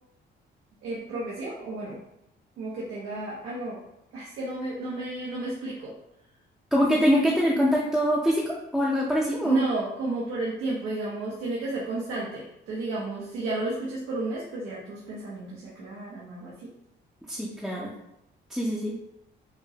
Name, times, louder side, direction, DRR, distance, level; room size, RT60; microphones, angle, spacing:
voice 1, 0.8-2.0 2.6-3.8 4.1-5.9 9.4-16.5, right 2 dB, 85° right, -6 dB, 0.9 m, -32 dB
voice 2, 6.7-9.6 17.3-17.9 18.5-18.9, equal, ahead, -5 dB, 0.6 m, -24 dB
5.1 x 2.0 x 2.8 m, 0.81 s
cardioid pair, 90°, 20 cm